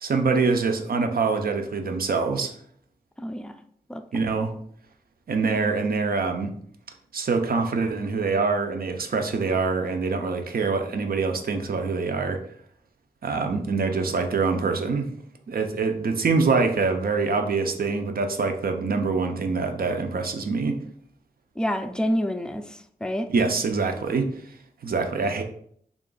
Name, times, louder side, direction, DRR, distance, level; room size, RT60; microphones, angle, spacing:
voice 1, 0.0-2.5 4.1-4.5 5.3-6.5 7.1-12.4 13.2-15.1 15.5-20.8 23.3-24.3 24.8-25.4, right 4 dB, 85° right, 5 dB, 0.5 m, -25 dB
voice 2, 3.2-3.5 3.9-4.0 21.6-23.3, equal, 5° left, 8 dB, 0.3 m, -28 dB
3.6 x 2.4 x 3.8 m, 0.63 s
wide cardioid pair, 100°, 15 cm